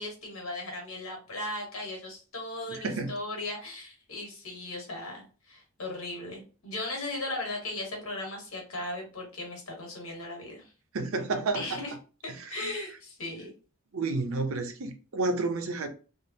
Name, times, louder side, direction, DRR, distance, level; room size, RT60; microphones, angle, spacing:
voice 1, 0.0-10.7 11.5-11.9 12.2-13.5, left 2 dB, 70° left, 1.3 m, -37 dB
voice 2, 2.7-3.1 10.9-11.8 13.9-15.9, right 3 dB, 70° right, 0.5 m, -30 dB
3.4 x 2.0 x 2.6 m
head